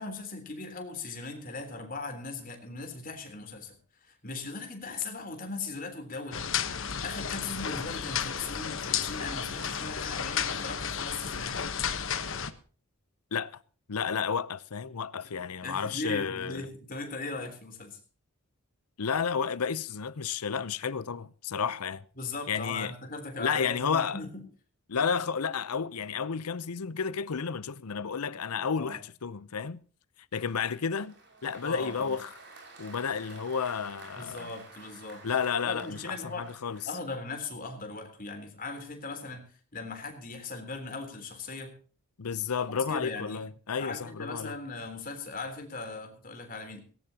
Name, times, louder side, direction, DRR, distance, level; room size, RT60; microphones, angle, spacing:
voice 1, 0.0-3.8 4.0-6.5 7.0-11.7 15.6-18.0 22.2-24.5 28.8-29.0 31.6-32.2 34.2-35.3 35.6-36.5 36.9-41.7 42.6-43.4 43.8-46.8, left 3 dB, 40° left, 3.5 m, -39 dB
sound 1, 6.3-12.5, left 7 dB, 60° left, 1.2 m, -33 dB
voice 2, 13.9-16.7 19.0-22.0 22.5-22.9 23.4-24.2 24.9-29.8 30.3-31.1 31.4-32.3 32.8-34.5 35.2-36.8 42.2-44.6, left 6 dB, 85° left, 0.7 m, -31 dB
Applause, 30.3-37.5, right 3 dB, 50° right, 5.5 m, -52 dB
18.5 x 17.0 x 2.9 m
head